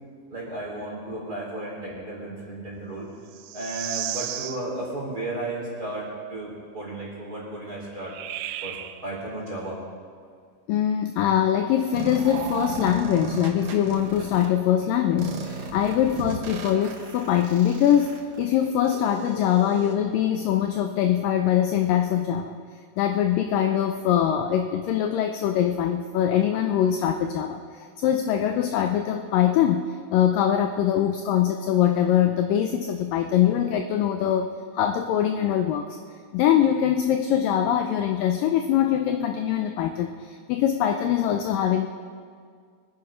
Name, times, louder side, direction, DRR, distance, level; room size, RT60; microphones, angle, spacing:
voice 1, 0.3-3.1 3.5-8.1 8.6-9.8, right 2 dB, 25° right, -4 dB, 4.0 m, -34 dB
sound 1, 3.3-4.6 8.0-9.0 12.2-13.4 15.9-16.3, right 12 dB, 85° right, 2.0 m, -34 dB
voice 2, 10.7-22.6 23.0-35.9 36.3-41.9, left 10 dB, 85° left, 6 dB, 1.9 m, -23 dB
sound 2, 11.9-14.5 15.2-19.9, right 4 dB, 60° right, 1.9 m, -36 dB
23.5 x 9.8 x 5.1 m, 2.1 s
omnidirectional pair, 4.7 m